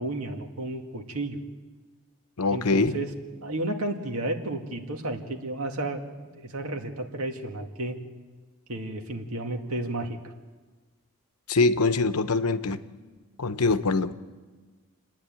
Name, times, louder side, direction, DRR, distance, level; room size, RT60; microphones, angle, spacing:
voice 1, 0.0-1.4 2.5-3.1 3.4-8.0 8.7-10.2, right 1 dB, 75° right, 4 dB, 2.0 m, -32 dB
voice 2, 2.4-3.0 11.5-12.8 13.4-14.1, left 3 dB, 90° left, 12 dB, 0.9 m, -23 dB
29.0 x 10.0 x 8.8 m, 1.4 s
head